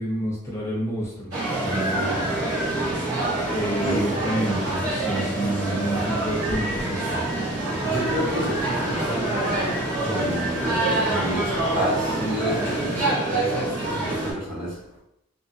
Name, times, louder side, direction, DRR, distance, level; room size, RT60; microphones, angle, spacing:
voice 1, 0.0-2.2 3.5-7.2, right 1 dB, 15° left, 0.5 m, -29 dB
sound 1, 1.3-14.3, right 2 dB, 85° right, 1.0 m, -26 dB
voice 2, 3.3-4.0 7.8-15.0, equal, 60° right, 1.3 m, -30 dB
2.8 x 2.5 x 2.6 m
head